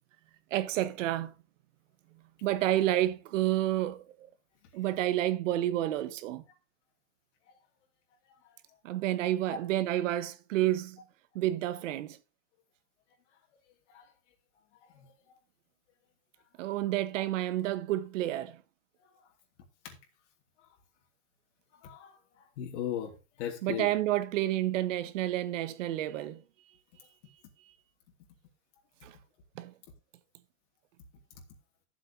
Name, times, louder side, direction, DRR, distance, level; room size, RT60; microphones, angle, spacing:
voice 1, 0.5-1.3 2.4-4.3 4.7-6.4 8.8-11.0 11.3-12.2 16.6-18.6 23.6-26.4 29.0-29.1 29.5-29.7, right 13 dB, 80° right, 1.4 m, -30 dB
voice 2, 21.8-22.2 22.6-23.9, left 10 dB, 70° left, 3.0 m, -37 dB
12.5 x 8.0 x 2.9 m
supercardioid pair, 155°, 37 cm